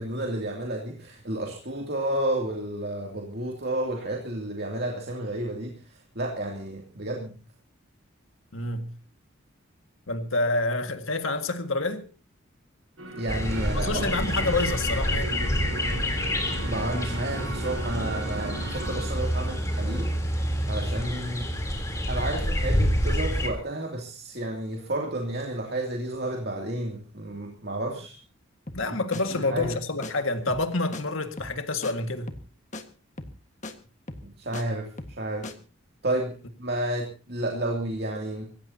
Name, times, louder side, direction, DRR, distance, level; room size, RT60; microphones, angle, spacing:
voice 1, 0.0-7.4 13.2-14.1 16.6-21.5 21.9-28.2 28.9-29.0 29.3-29.8 34.2-35.5 36.0-38.5, right 1 dB, 50° right, 2.6 m, -31 dB
voice 2, 8.5-8.9 10.1-12.0 13.7-15.4 28.7-32.3, left 2 dB, 75° left, 1.8 m, -28 dB
sound 1, 13.0-20.2, right 2 dB, 75° right, 4.1 m, -37 dB
sound 2, 13.3-23.5, equal, 15° left, 3.3 m, -28 dB
sound 3, 28.7-28.9 29.1-29.2 29.6-29.8 30.0-30.1 30.5-30.7 30.9-31.0 31.4-31.6 31.8-31.9 32.3-32.5 32.7-32.8 33.2-33.4 33.6-33.7 34.1-34.6 35.0-35.2 35.4-35.5, left 2 dB, 35° left, 1.5 m, -38 dB
25.5 x 15.5 x 2.8 m
head